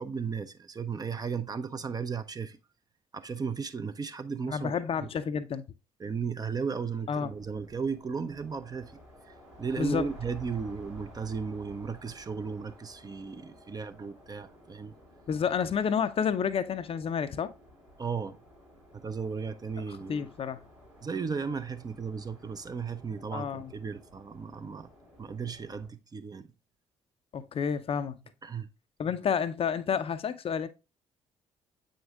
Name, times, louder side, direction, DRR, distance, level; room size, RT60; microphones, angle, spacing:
voice 1, 0.0-2.6 3.1-5.1 6.0-9.0 9.3-14.9 18.0-18.4 18.9-20.2 21.0-24.9 25.2-26.5 28.4-28.7, right 5 dB, 25° right, 0.6 m, -35 dB
voice 2, 4.5-5.6 7.1-7.3 9.8-10.0 15.3-17.5 20.1-20.6 23.3-23.7 27.3-28.2 29.0-30.7, left 7 dB, 40° left, 0.6 m, -30 dB
sound 1, 7.2-25.9, right 1 dB, 90° right, 3.2 m, -53 dB
7.8 x 5.1 x 2.4 m
figure-of-eight pair, 45°, 16 cm